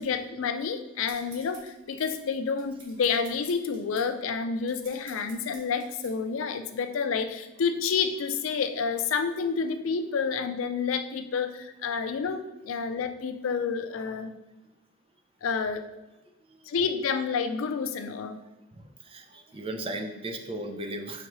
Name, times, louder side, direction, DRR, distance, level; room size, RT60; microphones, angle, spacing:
voice 1, 0.0-14.4 15.4-15.9 16.7-18.4, left 5 dB, 85° left, 9 dB, 0.4 m, -29 dB
sound 1, 1.1-6.2, right 2 dB, 85° right, 1.4 m, -51 dB
voice 2, 18.7-21.3, right 1 dB, 30° right, 4 dB, 0.5 m, -36 dB
4.9 x 3.5 x 3.1 m, 1.0 s
head